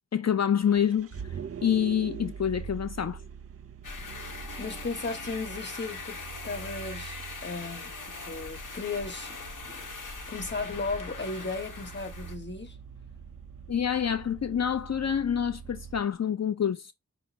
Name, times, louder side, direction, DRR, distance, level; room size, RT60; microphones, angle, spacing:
voice 1, 0.1-1.1 1.6-3.2 13.7-16.9, left 8 dB, 60° left, 0.5 m, -27 dB
Vehicle, 0.5-16.0, right 7 dB, 50° right, 0.5 m, -44 dB
sound 1, 3.8-12.4, left 4 dB, 90° left, 0.9 m, -41 dB
voice 2, 4.6-6.2 6.4-7.9 8.3-9.4 10.3-12.8, left 3 dB, 35° left, 1.1 m, -35 dB
5.4 x 2.1 x 4.0 m
wide cardioid pair, 50°, 30 cm